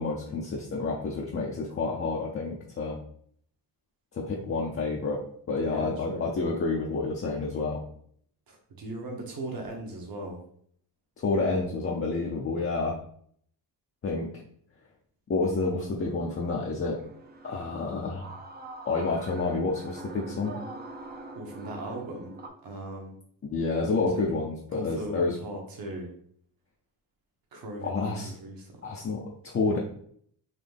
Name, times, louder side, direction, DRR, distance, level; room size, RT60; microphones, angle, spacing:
voice 1, 0.0-3.0 4.1-7.8 11.2-13.0 14.0-14.3 15.3-17.0 17.4-18.3 18.9-20.6 23.5-25.3 27.8-28.3 28.8-29.8, left 3 dB, 35° left, -2 dB, 0.6 m, -29 dB
voice 2, 5.6-6.3 8.5-10.4 21.3-22.3 22.6-23.1 24.1-24.2 24.7-26.1 27.5-28.9, right 1 dB, 55° right, 1 dB, 1.2 m, -38 dB
sound 1, 15.4-22.5, right 2 dB, 25° right, 0.5 m, -44 dB
4.1 x 2.6 x 3.4 m, 0.62 s
cardioid pair, 125°, 41 cm